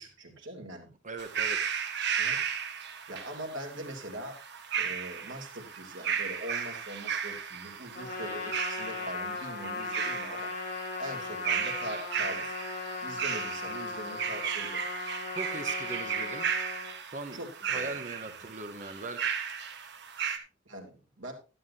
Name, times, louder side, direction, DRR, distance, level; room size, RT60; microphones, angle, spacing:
voice 1, 0.0-0.9 2.2-2.4 3.1-4.4 4.7-10.5 11.0-12.6 13.0-14.8 17.3-17.9 18.3-18.5 20.6-21.3, right 1 dB, 90° right, 2 dB, 2.9 m, -42 dB
voice 2, 1.0-1.7 15.3-16.5 17.1-17.4 17.7-19.3, right 3 dB, 40° right, 8 dB, 1.1 m, -40 dB
sound 1, 1.2-20.4, right 7 dB, 65° right, 1.3 m, -35 dB
Trumpet, 7.9-17.0, left 4 dB, 50° left, 2.8 m, -38 dB
12.0 x 11.0 x 2.8 m, 0.32 s
head